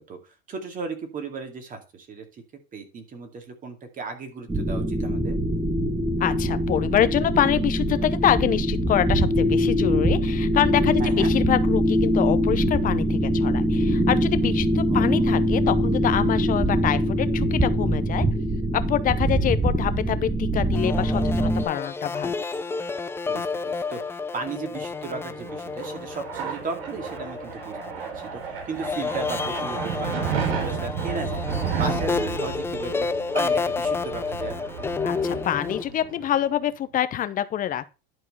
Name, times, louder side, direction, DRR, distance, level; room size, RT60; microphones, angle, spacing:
voice 1, 0.0-2.4 2.7-5.4 11.0-11.3 14.9-15.2 23.3-33.1 33.3-34.6, right 4 dB, 25° right, 2.3 m, -35 dB
sound 1, 4.5-21.6, equal, 10° right, 1.1 m, -23 dB
voice 2, 6.2-18.3 18.7-22.4 35.0-37.9, left 11 dB, 25° left, 0.8 m, -25 dB
sound 2, 20.7-28.3 28.8-35.8, left 4 dB, 10° left, 0.4 m, -30 dB
sound 3, 25.2-36.5, right 6 dB, 80° right, 3.6 m, -32 dB
11.0 x 4.7 x 5.5 m
supercardioid pair, 125°, 31 cm